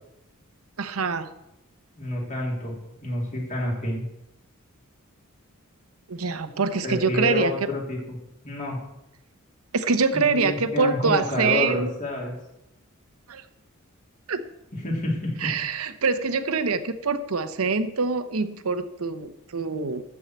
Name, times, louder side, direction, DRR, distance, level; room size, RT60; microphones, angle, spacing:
voice 1, 0.8-1.3 6.1-7.5 9.7-11.9 13.3-13.4 14.3-14.4 15.4-20.0, right 4 dB, 85° right, 10 dB, 0.8 m, -25 dB
voice 2, 2.0-2.7 3.0-4.0 6.8-8.2 8.4-8.8 10.1-12.3 14.8-15.5, left 2 dB, 35° left, -2 dB, 3.2 m, -28 dB
12.5 x 4.8 x 7.9 m, 0.87 s
head